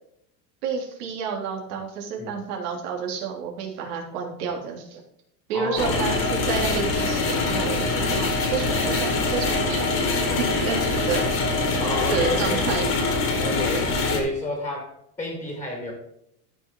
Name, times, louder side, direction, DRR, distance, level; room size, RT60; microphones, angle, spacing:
voice 1, 0.6-5.0 5.5-10.0 10.4-11.5 12.1-12.9, right 6 dB, 80° right, 0 dB, 3.2 m, -30 dB
voice 2, 5.5-6.0 10.3-10.5 11.8-12.7 13.4-15.9, left 1 dB, 5° left, 1 dB, 2.0 m, -31 dB
sound 1, 5.8-14.2, left 3 dB, 25° left, 1.8 m, -24 dB
13.5 x 6.1 x 3.8 m, 0.77 s
cardioid pair, 180°, 46 cm